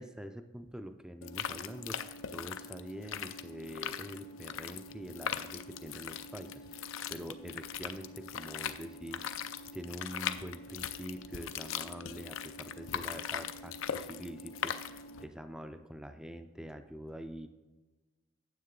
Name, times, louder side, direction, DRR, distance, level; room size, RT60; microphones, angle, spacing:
voice 1, 0.0-9.3 9.7-17.5, equal, 5° right, 7 dB, 0.3 m, -45 dB
sound 1, 1.2-15.2, left 7 dB, 85° left, 0.4 m, -40 dB
9.4 x 7.3 x 3.8 m, 1.2 s
head